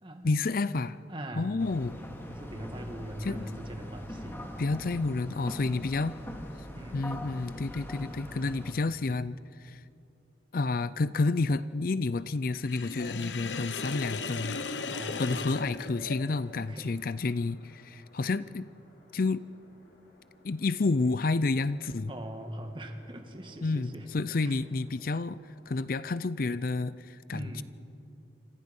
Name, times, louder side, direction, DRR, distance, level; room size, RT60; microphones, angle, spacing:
voice 1, 0.2-1.0 1.4-2.0 3.2-3.5 4.6-6.2 6.9-9.8 10.5-18.7 19.1-19.5 20.4-22.1 23.6-25.4 25.7-27.6, left 3 dB, 50° left, 16 dB, 0.5 m, -30 dB
voice 2, 1.1-1.6 2.2-4.5 6.8-7.1 14.9-15.5 16.6-17.0 22.0-24.1 24.4-24.5 27.3-27.6, right 1 dB, 30° right, 4 dB, 2.2 m, -41 dB
sound 1, 1.6-8.7, equal, 15° left, 2.2 m, -42 dB
Sink (filling or washing), 12.6-16.6, left 4 dB, 90° left, 1.1 m, -37 dB
sound 2, 13.4-25.8, left 1 dB, 70° left, 5.5 m, -62 dB
28.5 x 26.5 x 5.5 m, 2.7 s
head